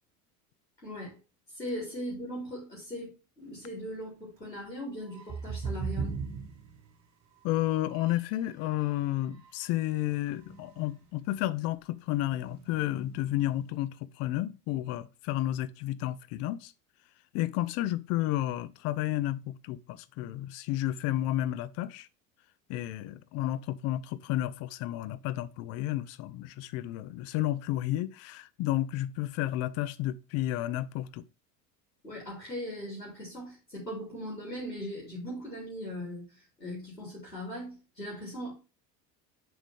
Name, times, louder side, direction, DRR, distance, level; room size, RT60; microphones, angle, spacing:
voice 1, 0.8-1.2 1.5-6.1 32.0-38.5, equal, 85° left, 3.5 m, -39 dB
sound 1, 5.0-8.4 8.7-11.1 11.4-11.5 11.9-13.6, right 5 dB, 35° right, 1.8 m, -40 dB
voice 2, 7.4-16.7 17.3-22.1 22.7-31.2, left 14 dB, 30° left, 0.5 m, -31 dB
7.3 x 5.2 x 3.4 m
figure-of-eight pair, 75°, 48 cm